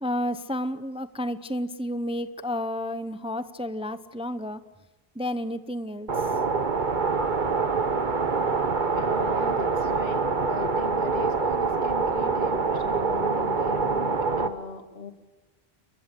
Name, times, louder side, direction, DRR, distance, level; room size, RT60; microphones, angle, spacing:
voice 1, 0.0-4.6 5.1-6.3, left 1 dB, 5° right, 12 dB, 0.7 m, -31 dB
sound 1, 6.1-14.5, right 4 dB, 50° right, 1.4 m, -25 dB
voice 2, 8.9-15.1, left 3 dB, 70° left, 7 dB, 2.5 m, -37 dB
30.0 x 22.5 x 6.9 m, 1.1 s
omnidirectional pair, 1.1 m